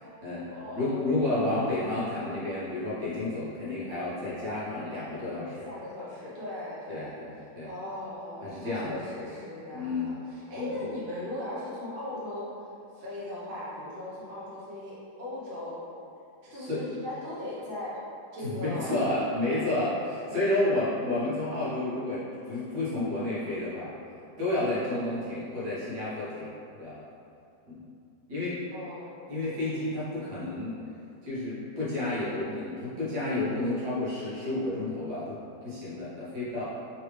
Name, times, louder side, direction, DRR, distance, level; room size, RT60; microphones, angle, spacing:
voice 1, 0.0-1.1 5.6-7.1 7.6-12.5 12.9-15.8 16.5-18.0 18.3-19.1 28.7-29.1 29.4-29.7, left 1 dB, 45° right, -8 dB, 0.7 m, -38 dB
voice 2, 0.8-5.7 6.9-7.7 8.4-9.0 9.7-10.2 10.6-10.8 16.5-16.8 18.4-23.9 24.4-27.0 27.7-27.8 28.3-28.6 29.3-30.8 31.2-36.7, left 2 dB, 60° right, -10 dB, 1.7 m, -31 dB
3.9 x 3.2 x 3.2 m, 2.6 s
omnidirectional pair, 2.0 m